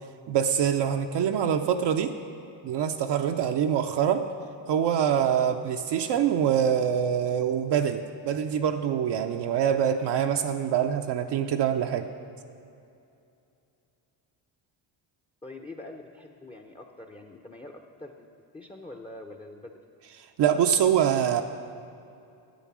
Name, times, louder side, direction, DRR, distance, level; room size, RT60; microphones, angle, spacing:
voice 1, 0.3-2.2 2.6-4.3 4.7-12.1 20.2-21.4, right 8 dB, 60° right, 5 dB, 0.6 m, -25 dB
voice 2, 15.4-17.7 18.0-18.3 18.5-19.9, left 2 dB, 10° left, 3 dB, 0.6 m, -44 dB
9.1 x 8.4 x 6.1 m, 2.6 s
cardioid pair, 85°, 49 cm